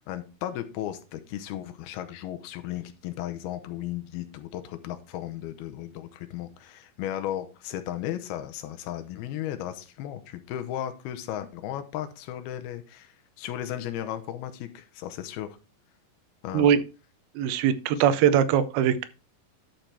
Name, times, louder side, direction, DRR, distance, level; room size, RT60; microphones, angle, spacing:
voice 1, 0.0-15.5 16.4-16.8, left 12 dB, 90° left, 9 dB, 2.8 m, -35 dB
voice 2, 17.4-19.0, right 9 dB, 90° right, 13 dB, 2.7 m, -21 dB
11.5 x 5.9 x 3.3 m, 0.33 s
omnidirectional pair, 4.3 m